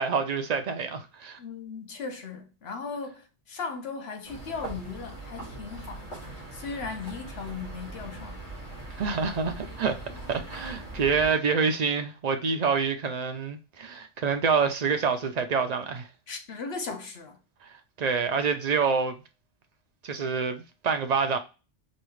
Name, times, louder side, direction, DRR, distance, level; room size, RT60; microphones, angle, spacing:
voice 1, 0.0-1.4 9.0-10.0 10.3-16.1 18.0-19.2 20.0-21.4, right 5 dB, 50° right, 0.5 m, -27 dB
voice 2, 1.4-8.4 16.3-17.4, left 4 dB, 65° left, 1.1 m, -37 dB
sound 1, 4.2-11.3, right 2 dB, 80° left, 2.6 m, -41 dB
5.2 x 2.4 x 3.1 m
omnidirectional pair, 1.2 m